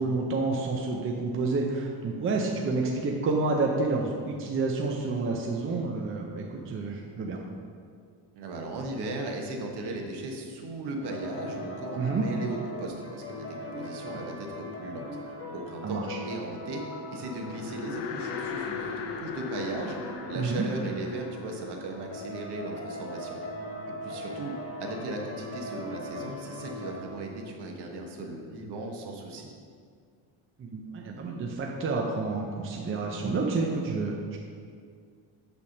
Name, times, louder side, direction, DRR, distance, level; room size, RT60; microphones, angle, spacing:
voice 1, 0.0-7.4 11.9-12.3 15.8-16.2 20.3-20.7 30.6-34.4, right 3 dB, 30° right, 0 dB, 0.6 m, -29 dB
voice 2, 8.3-15.1 15.5-23.4 23.9-24.5 24.8-29.5, right 2 dB, 60° right, 1 dB, 1.3 m, -37 dB
sound 1, 11.0-27.0, left 1 dB, 30° left, 1.1 m, -40 dB
sound 2, 17.4-22.9, left 7 dB, 65° left, 0.8 m, -39 dB
8.4 x 3.5 x 6.4 m, 2.1 s
cardioid pair, 155°, 45 cm